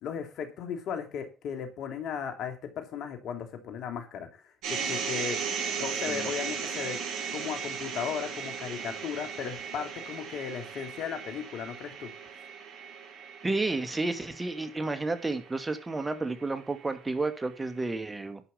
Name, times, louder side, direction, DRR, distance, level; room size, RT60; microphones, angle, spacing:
voice 1, 0.0-4.4 4.7-5.4 5.8-7.0 7.3-12.1, left 7 dB, 70° left, 6 dB, 2.4 m, -36 dB
sound 1, 4.6-16.8, right 6 dB, 75° right, 5.1 m, -37 dB
voice 2, 13.4-18.4, right 3 dB, 25° right, 9 dB, 2.3 m, -31 dB
11.5 x 5.5 x 6.9 m, 0.33 s
hypercardioid pair, 55°, 0 cm